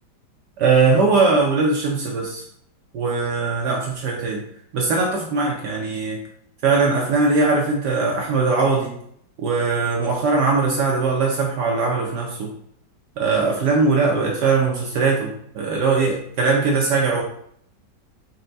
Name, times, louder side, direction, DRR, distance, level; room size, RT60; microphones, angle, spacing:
voice 1, 0.6-2.4 2.9-4.4 4.7-6.2 6.6-8.9 9.4-12.5 13.2-17.2, right 4 dB, 70° right, -1 dB, 1.1 m, -20 dB
4.2 x 2.2 x 3.9 m, 0.68 s
omnidirectional pair, 2.0 m